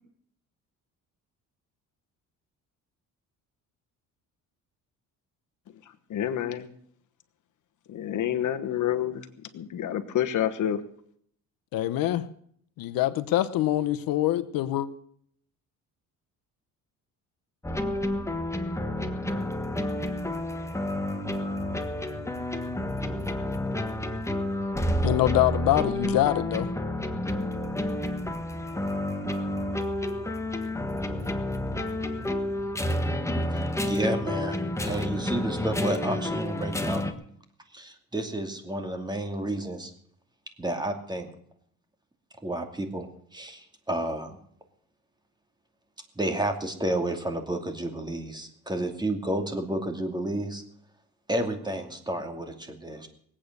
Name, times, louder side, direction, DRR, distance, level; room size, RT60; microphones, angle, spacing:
voice 1, 6.1-6.7 7.9-9.3 9.5-10.8, left 10 dB, 60° left, 10 dB, 1.2 m, -28 dB
voice 2, 11.7-12.2 12.8-14.9 25.0-26.7, left 14 dB, 80° left, 13 dB, 0.9 m, -24 dB
sound 1, 17.6-37.1, left 1 dB, 10° left, 1.4 m, -30 dB
voice 3, 33.5-37.0 37.7-39.9 40.6-41.3 42.4-44.4 46.2-50.6 51.3-53.1, right 1 dB, 10° right, 5 dB, 2.5 m, -31 dB
21.0 x 8.7 x 6.7 m, 0.65 s
cardioid pair, 110°, 34 cm